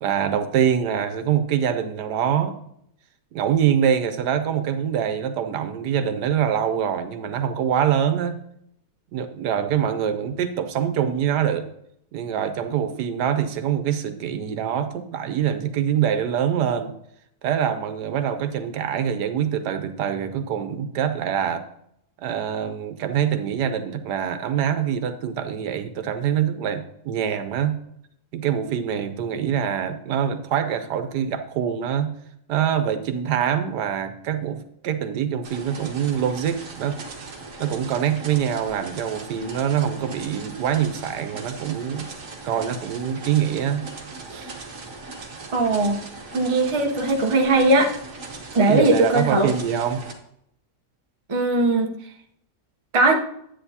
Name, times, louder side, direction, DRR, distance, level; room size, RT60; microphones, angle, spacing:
voice 1, 0.0-2.6 3.3-8.4 9.1-11.7 12.1-16.9 17.4-21.6 22.2-27.8 28.3-32.1 32.5-37.0 37.6-42.1 42.4-43.9 44.3-44.5 48.7-50.0, right 9 dB, 80° right, 9 dB, 1.3 m, -24 dB
sound 1, 35.4-50.1, right 3 dB, 55° right, 1.5 m, -39 dB
voice 2, 45.5-46.0 46.3-47.9 48.5-49.5 51.3-51.9 52.9-53.2, right 2 dB, 25° right, 2 dB, 0.7 m, -19 dB
10.0 x 8.4 x 2.8 m, 0.72 s
omnidirectional pair, 1.8 m